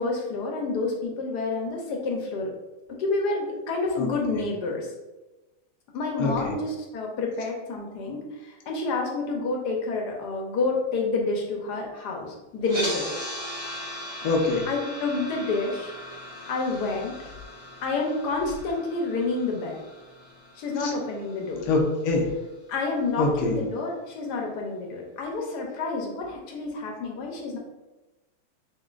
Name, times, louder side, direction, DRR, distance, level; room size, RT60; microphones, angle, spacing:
voice 1, 0.0-2.5 3.0-4.9 5.9-13.1 14.7-15.9 16.5-17.2 17.8-19.8 20.6-21.6 22.7-27.6, left 3 dB, 65° left, 0 dB, 1.1 m, -29 dB
voice 2, 4.0-4.4 6.2-6.5 13.2-13.4 14.2-14.6 20.8-20.9 21.7-22.3 23.2-23.6, left 3 dB, 85° left, -1 dB, 0.8 m, -25 dB
sound 1, 12.6-22.7, equal, 75° right, 0.4 m, -38 dB
6.9 x 2.4 x 2.4 m, 1.1 s
omnidirectional pair, 2.4 m